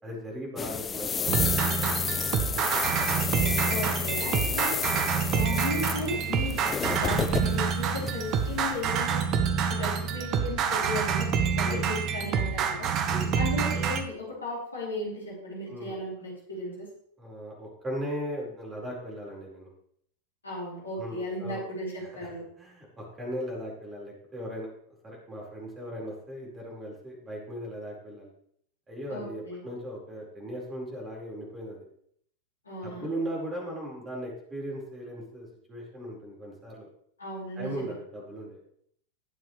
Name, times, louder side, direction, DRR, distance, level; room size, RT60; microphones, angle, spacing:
voice 1, 0.0-2.8 4.4-4.6 11.6-11.8 13.0-13.3 15.7-16.0 17.2-19.7 21.0-21.6 22.2-22.3 22.6-24.7 25.0-28.3 28.9-31.8 32.8-36.9 37.6-38.6, equal, 15° right, -3 dB, 4.8 m, -38 dB
sound 1, 0.6-8.8, left 6 dB, 20° left, 0.4 m, -32 dB
sound 2, 1.3-14.0, right 6 dB, 35° right, 1.1 m, -27 dB
voice 2, 3.7-4.8 5.3-9.3 9.7-12.9 13.3-16.9 20.4-22.4 29.1-29.6 32.6-33.1 37.2-37.7, left 1 dB, 75° left, -5 dB, 5.1 m, -35 dB
20.0 x 7.7 x 3.3 m, 0.67 s
figure-of-eight pair, 90°, 0 cm